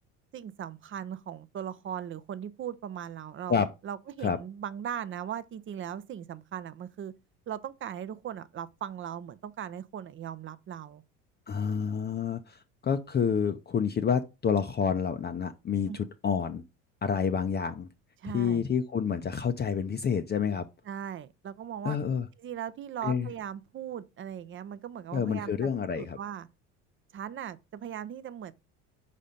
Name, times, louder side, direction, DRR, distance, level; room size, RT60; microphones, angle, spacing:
voice 1, 0.3-7.1 7.5-11.0 15.9-16.0 18.2-18.6 20.9-22.0 22.4-25.7 26.0-26.5 27.1-28.5, right 9 dB, 35° right, 0.6 m, -38 dB
voice 2, 11.5-16.6 17.0-17.9 18.2-20.7 21.8-22.3 23.0-23.3 25.1-26.2, left 7 dB, 25° left, 0.6 m, -28 dB
5.0 x 4.2 x 5.1 m
supercardioid pair, 85°, 37 cm